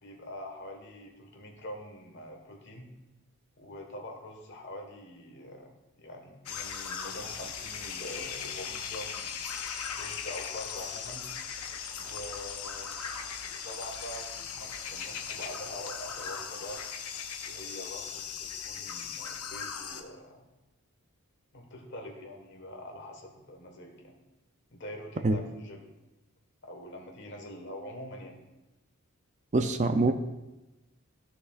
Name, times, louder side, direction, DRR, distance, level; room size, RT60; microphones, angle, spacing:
voice 1, 0.0-2.9 3.6-9.4 10.0-11.2 12.0-13.0 13.6-16.8 17.4-20.4 21.5-24.1 24.7-25.9 26.6-28.4, left 1 dB, 50° left, 2 dB, 1.4 m, -44 dB
sound 1, 6.5-20.0, left 7 dB, 80° left, 0.8 m, -38 dB
voice 2, 29.5-30.1, right 2 dB, 30° right, 8 dB, 0.4 m, -24 dB
14.0 x 6.6 x 2.4 m, 1.0 s
head